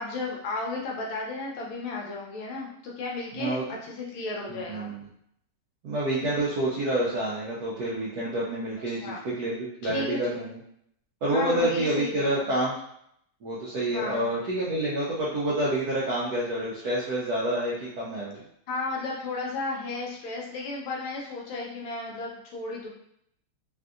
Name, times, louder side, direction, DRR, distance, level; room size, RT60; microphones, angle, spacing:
voice 1, 0.0-4.9 8.9-9.2 9.8-10.5 11.3-12.5 13.9-14.3 18.7-22.9, left 3 dB, 75° left, -3 dB, 1.3 m, -34 dB
voice 2, 3.3-3.6 4.5-5.0 5.8-10.6 11.2-12.7 13.4-18.4, right 1 dB, 75° right, -7 dB, 0.9 m, -28 dB
3.5 x 2.5 x 2.4 m, 0.72 s
omnidirectional pair, 2.4 m